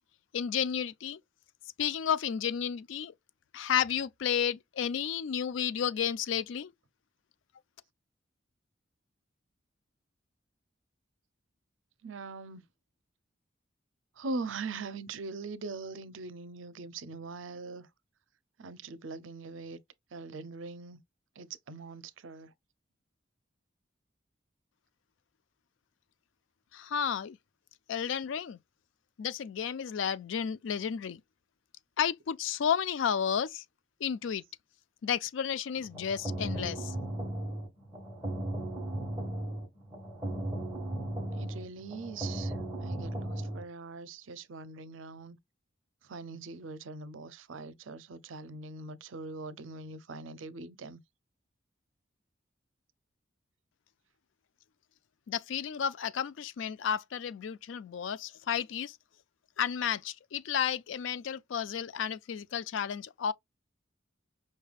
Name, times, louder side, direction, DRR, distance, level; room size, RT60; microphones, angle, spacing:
voice 1, 0.3-1.2 1.8-3.1 3.5-6.7 26.7-27.4 27.9-28.6 29.2-31.2 32.0-33.6 34.0-34.4 35.0-36.9 55.3-59.0 59.6-63.3, left 8 dB, 75° left, 0.4 m, -32 dB
voice 2, 12.0-12.6 14.2-17.9 18.6-19.8 20.1-21.0 21.4-22.5 41.3-45.4 46.0-51.0, right 3 dB, 85° right, 0.6 m, -42 dB
sound 1, 35.8-43.6, right 1 dB, 10° right, 1.7 m, -36 dB
5.4 x 3.3 x 2.3 m
head